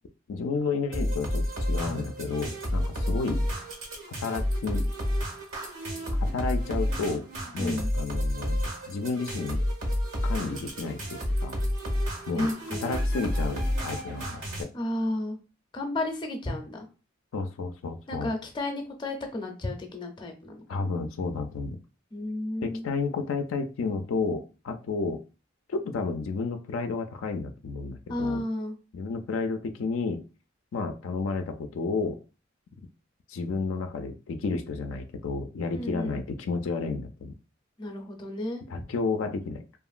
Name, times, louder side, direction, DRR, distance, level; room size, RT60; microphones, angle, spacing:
voice 1, 0.3-3.4 4.2-4.8 6.1-7.2 7.5-9.6 10.2-11.6 12.3-14.7 17.3-18.3 20.7-21.8 22.6-25.2 25.7-28.4 28.9-30.2 30.7-32.2 33.3-37.3 38.7-39.6, left 4 dB, 75° left, 6 dB, 0.4 m, -31 dB
sound 1, 0.9-14.6, equal, 85° right, 1.1 m, -30 dB
voice 2, 7.6-7.9 12.3-12.8 14.7-15.4 15.7-16.8 18.1-20.6 22.1-22.8 28.1-28.8 35.7-36.2 37.8-38.6, left 1 dB, 25° left, 3 dB, 0.5 m, -32 dB
2.8 x 2.5 x 2.4 m, 0.32 s
head